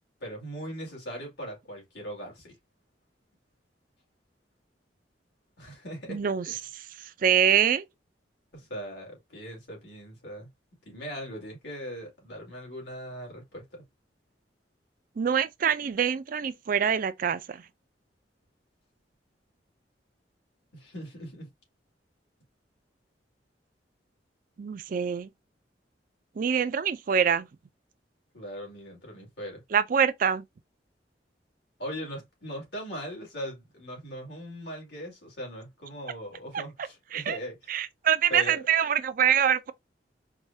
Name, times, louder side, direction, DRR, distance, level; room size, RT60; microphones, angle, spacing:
voice 1, 0.2-2.5 5.6-6.7 8.5-10.5 10.8-13.8 20.7-21.5 28.3-29.6 31.8-37.7 38.3-38.6, equal, 75° left, 2.2 m, -40 dB
voice 2, 6.1-6.5 7.2-7.8 15.2-17.6 24.6-25.3 26.4-27.5 29.7-30.4 37.1-37.4 37.7-39.7, right 8 dB, 50° right, 0.4 m, -25 dB
4.7 x 2.2 x 2.7 m
head